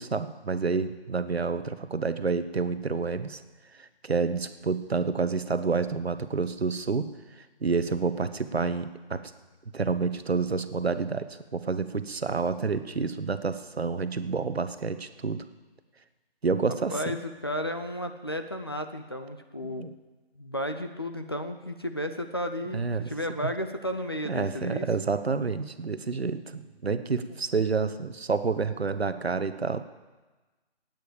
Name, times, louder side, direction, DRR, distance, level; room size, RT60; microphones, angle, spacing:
voice 1, 0.0-3.4 3.8-7.1 7.6-9.3 9.7-15.4 16.4-16.9 19.6-19.9 22.7-23.1 24.3-29.8, right 4 dB, 75° right, 11 dB, 1.1 m, -29 dB
voice 2, 16.7-19.9 20.4-24.9 27.3-27.4, equal, 25° left, 7 dB, 0.5 m, -33 dB
13.5 x 9.2 x 8.5 m, 1.2 s
figure-of-eight pair, 155°, 31 cm